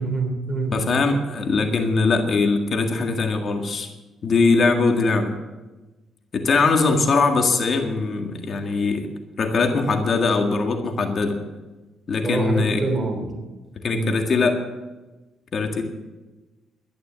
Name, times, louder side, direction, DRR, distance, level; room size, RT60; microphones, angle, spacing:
voice 1, 0.0-0.9 12.2-13.4 13.9-14.2, right 3 dB, 25° right, 5 dB, 3.1 m, -26 dB
voice 2, 0.7-3.9 4.2-5.3 6.3-9.1 9.4-11.4 12.1-12.8 13.8-14.6 15.5-15.8, left 4 dB, 50° left, 4 dB, 1.8 m, -21 dB
12.0 x 11.0 x 7.6 m, 1.2 s
cardioid pair, 90°, 0 cm